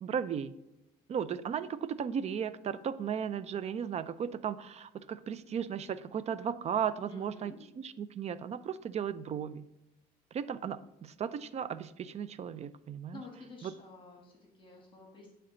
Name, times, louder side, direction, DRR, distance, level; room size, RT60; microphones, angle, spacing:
voice 1, 0.0-0.5 1.1-9.6 10.3-13.2 13.6-13.7, right 8 dB, 40° right, 14 dB, 0.4 m, -36 dB
voice 2, 7.0-7.6 10.6-10.7 13.1-15.4, left 3 dB, 30° left, 0 dB, 1.3 m, -51 dB
9.2 x 3.2 x 3.8 m, 0.90 s
cardioid pair, 110°, 17 cm